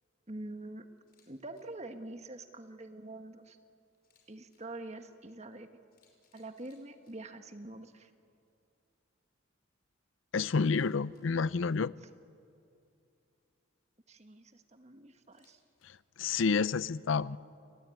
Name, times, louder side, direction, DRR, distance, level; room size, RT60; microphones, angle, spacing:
voice 1, 0.3-0.9 1.3-3.6 4.3-5.7 6.3-8.1 14.1-15.6, right 2 dB, 30° right, 1.4 m, -45 dB
Camera, 1.0-1.3 1.5-1.6 3.9-4.6 5.5-5.6 5.9-7.1 10.3-11.2 15.2-15.9, left 7 dB, 45° left, 5.2 m, -70 dB
voice 2, 10.3-11.9 15.8-17.4, left 5 dB, 70° left, 0.5 m, -29 dB
29.5 x 19.5 x 9.2 m
head